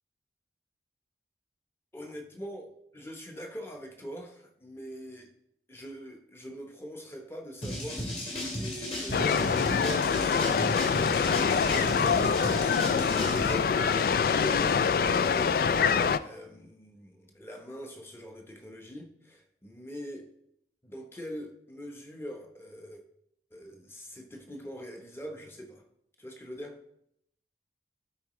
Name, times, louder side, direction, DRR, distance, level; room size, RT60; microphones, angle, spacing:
voice 1, 1.9-5.3 5.7-20.3 20.8-23.0 23.5-25.8 26.2-26.8, equal, 15° left, 2 dB, 0.9 m, -43 dB
sound 1, 7.6-13.5, left 1 dB, 35° left, 1.9 m, -35 dB
sound 2, 9.1-16.2, left 6 dB, 55° left, 0.3 m, -25 dB
13.0 x 4.7 x 3.1 m, 0.76 s
head